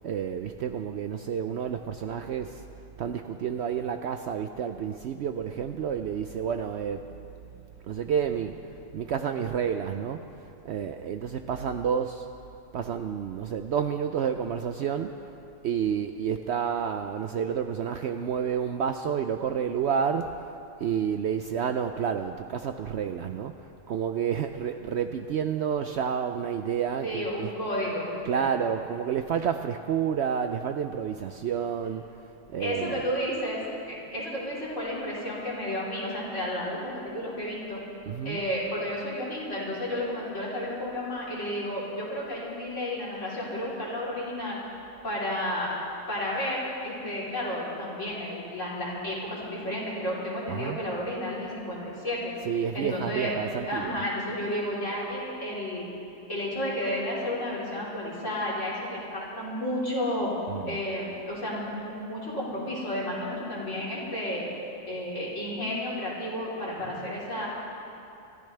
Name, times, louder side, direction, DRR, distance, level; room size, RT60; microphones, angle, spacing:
voice 1, 0.0-2.7 3.0-7.1 7.5-12.3 12.7-15.3 15.6-20.5 20.8-27.5 28.2-33.0 38.1-38.4 50.5-50.8 52.5-54.0 60.5-60.8, right 7 dB, 65° right, 7 dB, 0.7 m, -30 dB
voice 2, 27.0-28.5 32.6-37.8 38.2-44.6 45.0-45.7 46.1-52.3 52.7-53.3 53.7-55.9 56.3-60.3 60.7-64.4 64.9-67.5, left 1 dB, 60° left, -7 dB, 4.0 m, -32 dB
25.0 x 14.0 x 3.3 m, 2.7 s
omnidirectional pair, 1.5 m